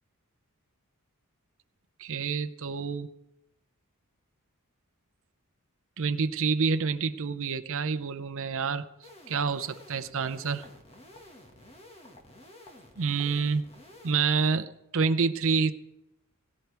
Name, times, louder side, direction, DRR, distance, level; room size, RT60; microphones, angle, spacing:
voice 1, 2.0-3.1 6.0-8.8 9.3-10.7 13.0-13.7 14.0-15.7, right 5 dB, 60° right, 10 dB, 0.7 m, -28 dB
sound 1, 9.0-14.1, left 1 dB, 25° left, 1.7 m, -51 dB
17.0 x 16.5 x 3.4 m, 0.89 s
head